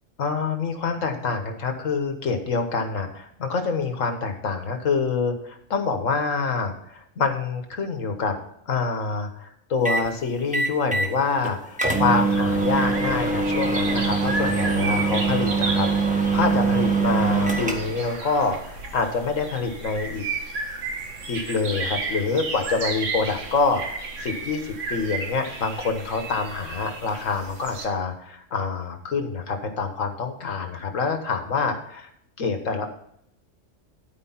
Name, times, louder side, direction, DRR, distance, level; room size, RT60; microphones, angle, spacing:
voice 1, 0.2-8.4 8.7-20.3 21.3-32.1 32.4-32.9, left 4 dB, 80° left, 6 dB, 1.7 m, -26 dB
sound 1, 9.9-10.1 10.5-11.1 11.4-11.5 11.8-18.1, right 4 dB, 5° right, 1.2 m, -23 dB
sound 2, 11.8-27.9, right 3 dB, 70° right, 1.7 m, -33 dB
12.0 x 4.9 x 5.7 m, 0.72 s
omnidirectional pair, 1.3 m